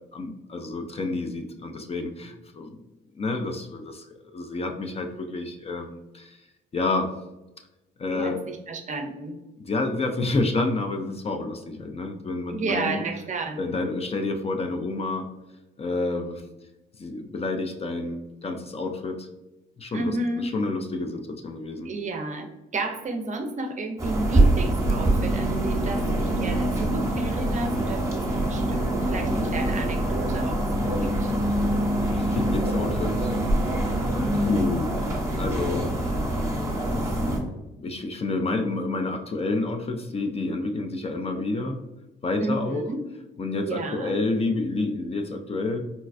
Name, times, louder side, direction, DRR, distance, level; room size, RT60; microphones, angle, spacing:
voice 1, 0.0-2.8 3.2-4.1 4.3-6.4 6.7-7.1 8.0-8.4 9.7-13.0 13.6-15.3 15.8-16.4 17.0-19.3 19.8-21.9 32.0-33.4 34.3-35.0 35.3-36.0 37.8-41.8 42.2-42.8 43.4-45.8, left 2 dB, 30° left, 5 dB, 0.4 m, -29 dB
voice 2, 8.1-9.4 12.5-13.6 19.9-20.5 21.8-31.3 42.4-43.0 43.6-44.2, right 2 dB, 40° right, 4 dB, 0.5 m, -32 dB
sound 1, 24.0-37.4, right 1 dB, 15° right, 0.8 m, -24 dB
4.1 x 2.2 x 2.4 m, 0.99 s
cardioid pair, 90°, 20 cm